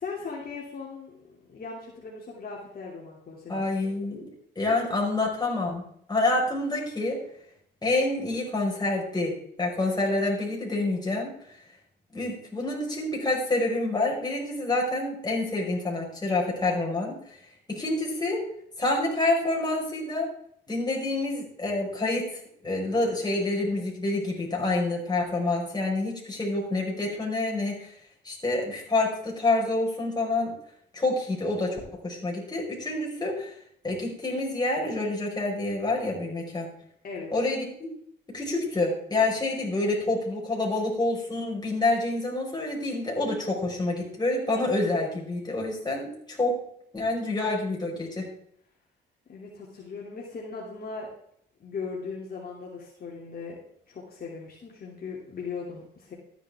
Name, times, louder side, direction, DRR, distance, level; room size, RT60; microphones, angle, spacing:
voice 1, 0.0-3.8 37.0-37.3 49.3-51.1 51.6-53.6 53.9-56.1, left 4 dB, 50° left, -3 dB, 2.8 m, -38 dB
voice 2, 3.5-4.2 4.6-7.2 7.8-11.3 12.1-17.2 17.7-18.4 18.8-20.3 20.7-22.3 22.6-27.9 28.2-30.5 30.9-33.5 33.8-36.7 37.3-37.9 38.3-46.6 46.9-48.3, left 2 dB, 20° left, -2 dB, 5.0 m, -27 dB
13.5 x 10.0 x 3.6 m, 0.68 s
cardioid pair, 90°, 20 cm